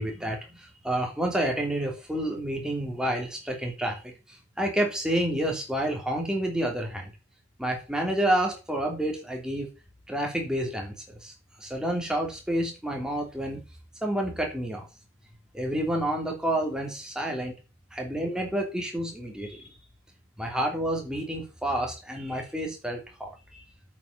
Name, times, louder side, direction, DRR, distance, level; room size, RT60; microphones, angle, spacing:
voice 1, 0.0-7.1 7.6-9.7 10.1-11.3 11.6-13.6 14.0-14.9 15.5-17.5 17.9-19.8 20.4-23.6, right 1 dB, 5° right, 0 dB, 3.0 m, -29 dB
8.3 x 7.5 x 6.8 m, 0.31 s
head